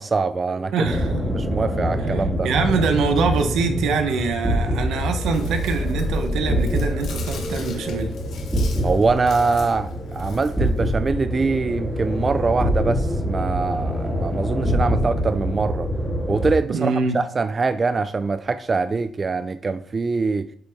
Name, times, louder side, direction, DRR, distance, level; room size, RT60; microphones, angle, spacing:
voice 1, 0.0-0.9 1.3-2.5 8.8-15.9 16.3-20.5, right 4 dB, 35° right, 0.4 m, -23 dB
voice 2, 0.7-1.2 2.4-8.1 16.7-17.2, right 4 dB, 80° right, 1.0 m, -24 dB
sound 1, 0.8-16.6, equal, ahead, 2.3 m, -25 dB
Chewing mastication, 4.6-11.0, left 4 dB, 70° left, 1.3 m, -42 dB
9.0 x 3.9 x 3.6 m
cardioid pair, 90°, 0 cm